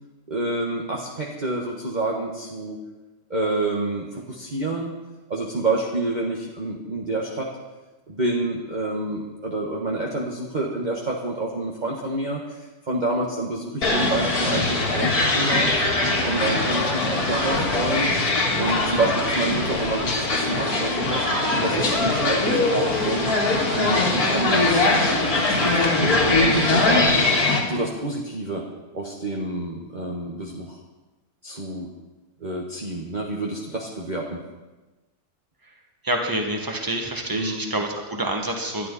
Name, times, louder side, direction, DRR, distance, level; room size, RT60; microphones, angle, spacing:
voice 1, 0.3-2.8 3.3-4.9 5.3-7.5 8.1-15.7 16.0-18.1 18.6-21.3 21.6-23.3 23.7-24.9 25.3-27.3 27.7-28.6 28.9-30.8 31.4-31.9 32.4-34.4 37.3-37.6, right 2 dB, 30° right, -2 dB, 1.5 m, -28 dB
sound 1, 13.8-27.6, left 2 dB, 70° left, 2.7 m, -21 dB
voice 2, 36.0-38.9, right 1 dB, 15° right, 2 dB, 1.8 m, -27 dB
20.0 x 12.0 x 4.2 m, 1.1 s
omnidirectional pair, 1.7 m